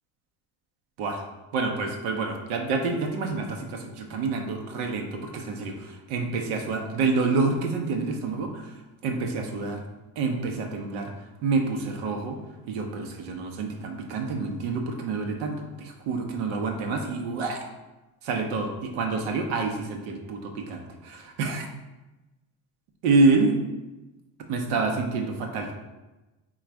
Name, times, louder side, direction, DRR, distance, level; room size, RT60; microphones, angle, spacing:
voice 1, 1.5-8.8 9.0-9.8 10.2-11.1 11.4-12.4 12.7-17.7 18.2-21.7 23.0-23.6 24.5-25.7, right 3 dB, 75° right, 3 dB, 0.8 m, -27 dB
3.9 x 2.4 x 4.6 m, 1.1 s
supercardioid pair, 75°, 43 cm